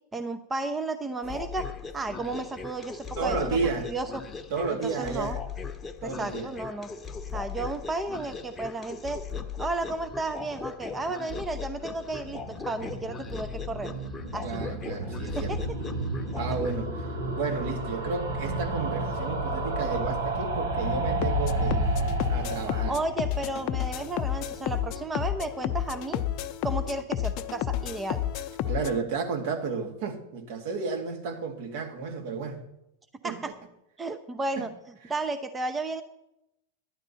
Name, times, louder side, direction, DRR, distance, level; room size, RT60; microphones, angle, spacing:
voice 1, 0.1-3.6 3.8-4.2 4.8-5.4 6.0-6.9 7.3-9.2 9.6-13.9 14.3-14.6 15.4-15.6 22.9-26.2 26.6-28.2 33.2-33.5 34.0-34.7 35.1-36.0, right 2 dB, 15° right, 0.7 m, -33 dB
sound 1, 1.2-16.8, left 5 dB, 15° left, 0.9 m, -39 dB
voice 2, 3.2-3.9 4.5-5.4 6.0-6.5 14.4-15.5 16.4-17.1 17.4-21.9 22.3-23.0 28.7-32.6 33.2-33.4 34.6-34.7, right 4 dB, 60° right, 1.9 m, -32 dB
sound 2, 12.0-25.1 25.3-25.4 25.6-25.7 25.9-26.0, right 2 dB, 85° right, 2.0 m, -32 dB
sound 3, 21.2-29.0, left 11 dB, 50° left, 0.7 m, -31 dB
11.5 x 10.0 x 4.2 m
hypercardioid pair, 105°, 0 cm